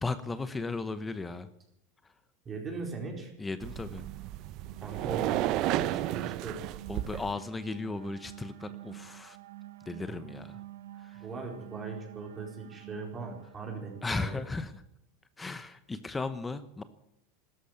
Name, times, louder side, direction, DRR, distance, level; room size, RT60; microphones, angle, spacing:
voice 1, 0.0-1.5 3.4-4.0 6.9-9.4 9.8-10.6 11.0-11.3 14.0-14.8 15.4-16.8, left 3 dB, 15° left, 12 dB, 0.9 m, -36 dB
voice 2, 2.4-3.3 4.8-6.7 10.1-10.2 11.2-14.4, right 4 dB, 25° right, 1 dB, 4.4 m, -39 dB
sound 1, 3.6-7.3, right 15 dB, 50° right, 0.6 m, -32 dB
sound 2, 4.3-14.8, right 14 dB, 85° right, 0.9 m, -48 dB
13.5 x 11.5 x 9.4 m, 0.77 s
supercardioid pair, 115°, 0 cm